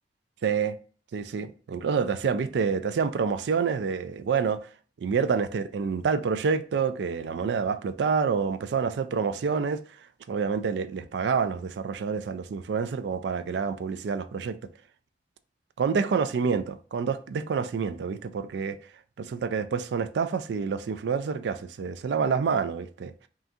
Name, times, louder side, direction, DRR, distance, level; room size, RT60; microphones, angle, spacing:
voice 1, 0.4-0.8 1.1-4.7 5.0-9.8 10.3-14.6 15.8-18.8 19.2-23.1, right 5 dB, 70° right, 0.3 m, -27 dB
5.5 x 2.5 x 2.7 m
head